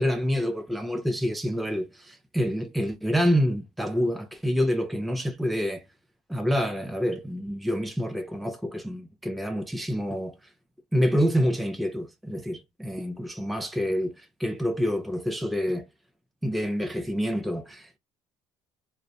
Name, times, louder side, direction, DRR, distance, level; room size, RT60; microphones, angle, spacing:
voice 1, 0.0-5.8 6.3-10.3 10.9-15.9 16.4-18.0, equal, ahead, 0.3 m, -27 dB
2.4 x 2.1 x 2.6 m
cardioid pair, 105°, 10 cm